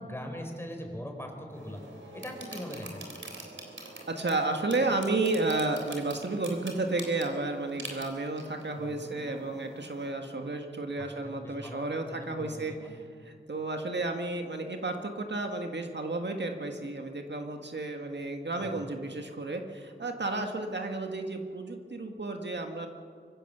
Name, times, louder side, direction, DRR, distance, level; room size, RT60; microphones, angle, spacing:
voice 1, 0.0-1.8 2.1-3.0 8.7-9.2 11.0-11.8 12.1-12.9 18.6-19.0, equal, 10° left, 2 dB, 4.8 m, -41 dB
sound 1, 1.5-10.1, right 2 dB, 85° right, 3.7 m, -46 dB
voice 2, 4.1-12.7 13.2-22.9, right 2 dB, 65° right, 4 dB, 1.7 m, -32 dB
24.5 x 16.0 x 6.8 m, 2.2 s
wide cardioid pair, 55°, 19 cm